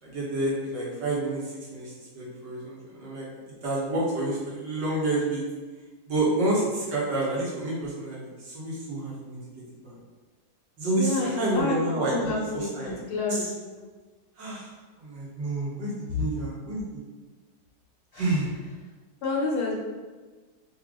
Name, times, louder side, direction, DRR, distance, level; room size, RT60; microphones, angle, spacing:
voice 1, 0.0-5.4 6.1-9.4 9.8-10.0 10.8-12.9 13.3-13.5 14.4-16.8 18.1-18.5, right 2 dB, 60° right, -6 dB, 1.8 m, -29 dB
voice 2, 11.0-11.8 12.1-13.7 19.2-19.8, left 2 dB, 80° left, -3 dB, 1.9 m, -29 dB
5.0 x 2.7 x 3.6 m, 1.3 s
omnidirectional pair, 2.3 m